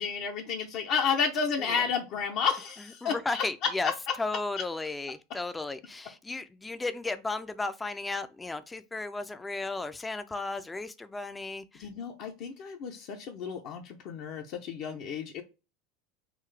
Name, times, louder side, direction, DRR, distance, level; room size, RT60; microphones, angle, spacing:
voice 1, 0.0-3.4 3.8-3.9 11.8-15.4, left 6 dB, 55° left, 0.6 m, -31 dB
voice 2, 3.0-3.9 4.2-11.9, left 3 dB, 15° left, 0.4 m, -34 dB
3.8 x 2.5 x 3.2 m
hypercardioid pair, 80°, 0 cm